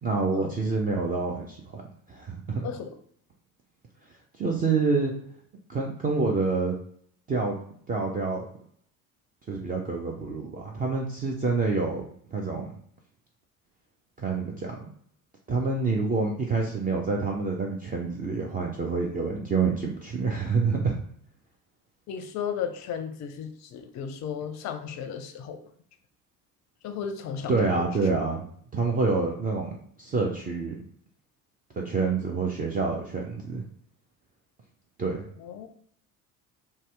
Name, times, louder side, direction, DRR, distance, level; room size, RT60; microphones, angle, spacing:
voice 1, 0.0-1.8 2.1-2.7 4.4-5.1 5.7-6.8 7.3-7.6 7.9-8.5 9.5-12.0 12.3-12.7 14.2-14.9 15.5-21.0 27.5-28.5 28.7-30.8 31.8-33.6 35.0-35.2, right 4 dB, 20° right, 0 dB, 0.4 m, -27 dB
voice 2, 2.6-3.0 22.1-25.6 26.8-27.9 35.4-35.7, left 7 dB, 40° left, 8 dB, 0.5 m, -35 dB
2.7 x 2.1 x 3.2 m, 0.63 s
figure-of-eight pair, 60°, 47 cm